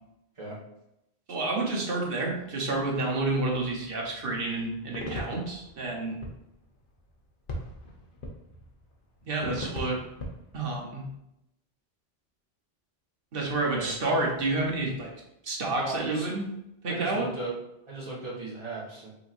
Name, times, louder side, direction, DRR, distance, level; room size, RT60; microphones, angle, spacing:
voice 1, 1.3-6.2 9.2-10.0 10.5-11.1 13.3-15.1 15.4-16.5 16.8-17.3, right 2 dB, 60° right, -1 dB, 1.2 m, -29 dB
sound 1, 4.9-10.7, equal, 55° left, 0.9 m, -39 dB
voice 2, 15.7-16.3 16.9-17.6 17.9-19.1, right 3 dB, 30° right, -7 dB, 1.5 m, -36 dB
5.5 x 3.0 x 2.6 m, 0.84 s
omnidirectional pair, 1.1 m